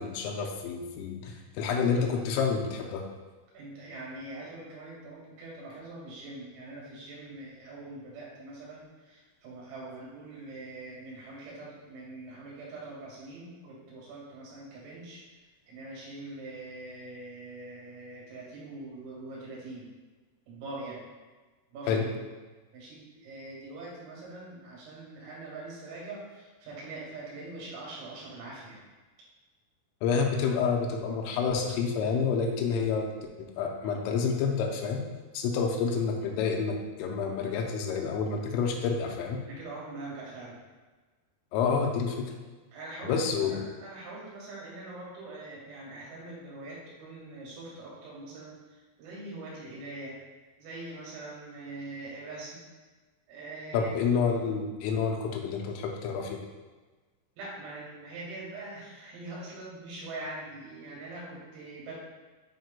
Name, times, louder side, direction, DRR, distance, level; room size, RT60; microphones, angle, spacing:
voice 1, 0.0-3.0 21.9-22.1 30.0-33.1 33.4-35.0 35.3-39.4 41.5-42.3 43.0-43.7 53.7-56.4, left 5 dB, 85° left, 1 dB, 3.2 m, -28 dB
voice 2, 3.5-15.2 15.7-19.9 20.5-21.0 21.7-22.0 22.7-28.8 39.5-40.6 42.7-48.6 49.0-50.2 50.6-52.6 53.3-53.9 57.4-61.9, right 2 dB, 80° right, -5 dB, 4.5 m, -43 dB
9.2 x 5.0 x 2.2 m, 1.3 s
omnidirectional pair, 5.9 m